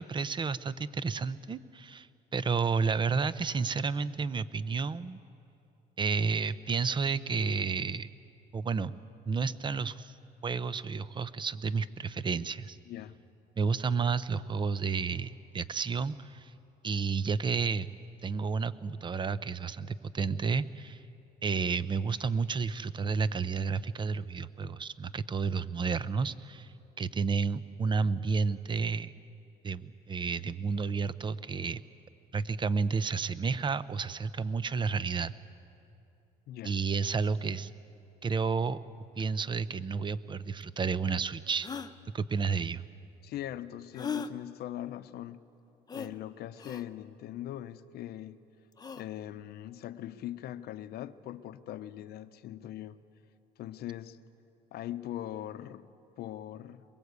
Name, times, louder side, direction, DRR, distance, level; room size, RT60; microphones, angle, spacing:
voice 1, 0.0-2.1 2.3-5.2 6.0-8.1 8.5-8.9 9.2-10.1 10.4-12.8 13.6-16.5 16.8-17.9 18.2-21.0 21.4-26.7 27.0-29.1 29.6-31.8 32.3-35.3 36.6-37.7 38.2-38.8 39.2-41.7 42.1-42.9, right 5 dB, 30° right, 16 dB, 0.7 m, -31 dB
voice 2, 12.9-13.2 36.5-36.8 43.2-45.4 45.9-48.4 49.0-53.0 53.6-54.2 54.7-56.8, left 12 dB, 70° left, 12 dB, 0.9 m, -41 dB
sound 1, 40.6-40.7 41.6-41.9 43.9-44.3 45.9-46.1 46.6-46.8 48.7-49.1, left 6 dB, 25° left, 0.9 m, -37 dB
23.0 x 21.5 x 8.2 m, 2.7 s
cardioid pair, 110°, 17 cm